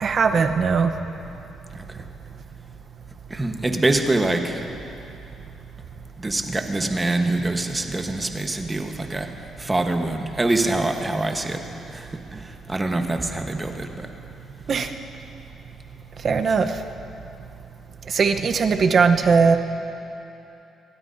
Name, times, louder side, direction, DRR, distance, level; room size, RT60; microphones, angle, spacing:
voice 1, 0.0-0.9 14.7-14.9 16.2-16.7 18.1-19.6, right 5 dB, 50° right, 6 dB, 0.9 m, -19 dB
voice 2, 3.3-4.7 6.2-9.3 9.6-11.6 11.9-14.1, right 2 dB, 20° right, 4 dB, 1.2 m, -25 dB
26.5 x 13.0 x 2.7 m, 2.9 s
cardioid pair, 90°, 0 cm